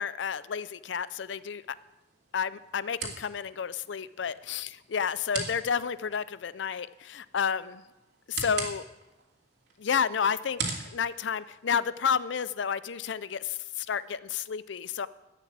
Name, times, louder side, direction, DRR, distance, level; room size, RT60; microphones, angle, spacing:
voice 1, 0.0-1.6 2.3-7.8 8.3-8.9 9.8-10.6 10.9-15.1, left 7 dB, 70° left, 0.5 m, -31 dB
sound 1, 1.2-12.2, right 4 dB, 65° right, 2.8 m, -42 dB
12.0 x 9.3 x 7.3 m
head